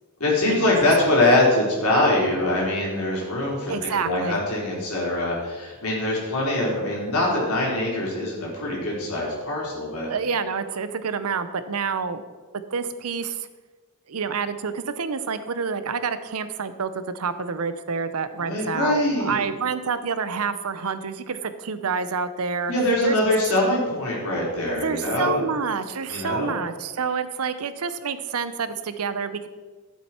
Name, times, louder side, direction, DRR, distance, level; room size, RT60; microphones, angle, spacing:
voice 1, 0.2-10.1 18.4-19.3 22.7-25.4 26.0-26.6, left 1 dB, 80° left, -4 dB, 3.7 m, -23 dB
voice 2, 3.7-4.4 10.1-12.2 12.5-13.5 14.1-22.7 23.0-23.2 24.7-29.5, right 5 dB, 85° right, 12 dB, 0.7 m, -28 dB
11.5 x 7.5 x 4.4 m, 1.3 s
head